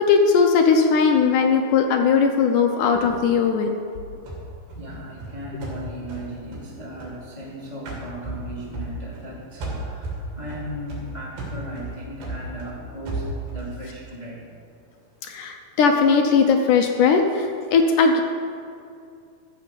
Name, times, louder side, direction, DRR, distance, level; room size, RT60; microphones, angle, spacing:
voice 1, 0.0-3.8 15.2-18.2, left 5 dB, 75° left, 4 dB, 2.0 m, -19 dB
sound 1, 4.3-7.5 7.9-9.3 9.6-13.8, right 2 dB, 75° right, 4.5 m, -34 dB
voice 2, 4.7-14.5, equal, 25° left, -4 dB, 0.9 m, -37 dB
13.5 x 7.6 x 7.0 m, 2.4 s
omnidirectional pair, 4.3 m